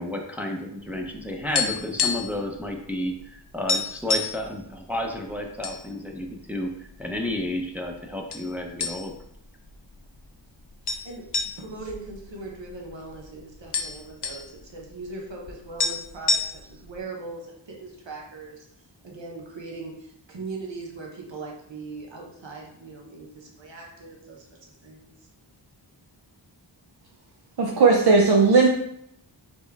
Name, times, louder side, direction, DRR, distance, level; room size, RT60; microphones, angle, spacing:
voice 1, 0.0-9.1, left 1 dB, 5° right, 1 dB, 0.6 m, -31 dB
sound 1, 1.0-2.4 2.7-2.9 3.2-3.3 3.7-4.4 5.1-5.8 6.2-6.3 7.0-7.6 8.3-8.5 8.8-9.3 9.7-9.8 10.9-12.9 13.2-13.3 13.5-14.4 15.5-15.6 15.8-16.9, left 4 dB, 60° left, 0.6 m, -27 dB
voice 2, 11.0-16.5 16.8-18.6 19.0-24.5 24.8-25.1, right 3 dB, 75° right, -1 dB, 1.0 m, -40 dB
voice 3, 27.6-28.7, right 4 dB, 55° right, -1 dB, 0.6 m, -17 dB
4.3 x 3.0 x 3.4 m, 0.73 s
wide cardioid pair, 45°, 45 cm